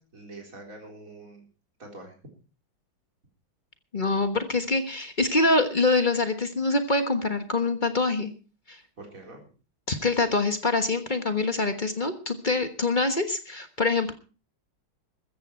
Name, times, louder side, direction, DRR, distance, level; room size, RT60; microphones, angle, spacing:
voice 1, 0.0-1.5 1.8-2.1 9.0-9.4, right 2 dB, 40° right, 1 dB, 4.3 m, -45 dB
voice 2, 3.9-8.3 8.7-8.8 9.9-14.1, left 3 dB, 30° left, 8 dB, 1.2 m, -25 dB
15.0 x 14.0 x 4.5 m, 0.35 s
omnidirectional pair, 2.2 m